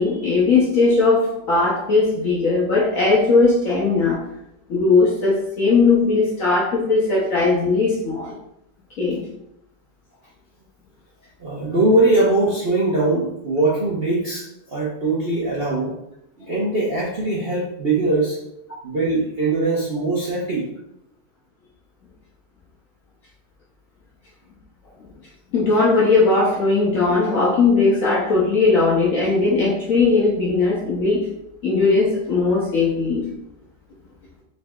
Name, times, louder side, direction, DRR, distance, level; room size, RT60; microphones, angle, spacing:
voice 1, 0.0-4.2 4.7-8.4 9.0-9.2 25.5-31.3 31.6-33.3, left 3 dB, 60° left, -4 dB, 0.9 m, -18 dB
voice 2, 11.4-16.0 16.4-18.4 18.8-20.7, right 2 dB, 55° right, -6 dB, 0.6 m, -21 dB
3.9 x 3.2 x 3.5 m, 0.80 s
omnidirectional pair, 2.2 m